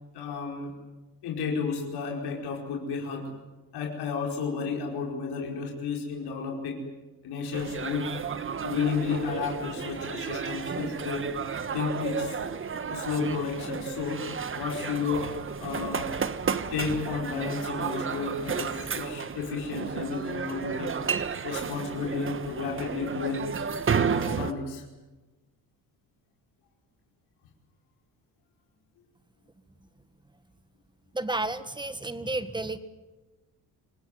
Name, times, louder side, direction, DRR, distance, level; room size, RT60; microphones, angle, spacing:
voice 1, 0.1-0.7 1.2-3.3 3.7-6.8 7.2-8.1 8.6-11.3 11.7-12.4 12.9-14.2 14.5-15.4 15.6-16.1 16.7-21.0 21.4-23.5 24.2-24.9, left 5 dB, 80° left, 0 dB, 5.2 m, -32 dB
sound 1, 7.5-24.5, right 6 dB, 30° right, 1.4 m, -32 dB
voice 2, 31.1-32.8, right 2 dB, 10° right, 12 dB, 1.7 m, -31 dB
27.0 x 18.0 x 9.5 m, 1.2 s
cardioid pair, 95°, 39 cm